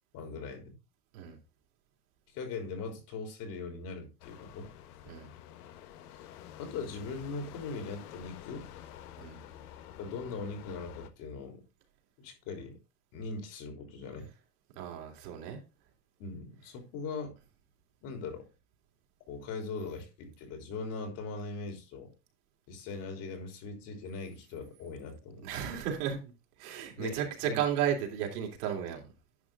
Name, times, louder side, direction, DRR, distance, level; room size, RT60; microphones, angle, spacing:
voice 1, 0.1-0.8 2.3-4.7 6.6-8.7 10.0-11.6 12.2-12.7 13.1-14.3 16.2-17.3 18.0-18.5 19.3-22.1 22.7-25.5 27.0-27.6, left 4 dB, 45° left, 3.3 m, -40 dB
sound 1, 4.2-11.1, left 11 dB, 70° left, 1.4 m, -49 dB
voice 2, 14.7-15.6 25.4-26.3 26.6-29.0, right 9 dB, 70° right, 3.3 m, -34 dB
10.5 x 5.8 x 3.6 m
supercardioid pair, 150°, 47 cm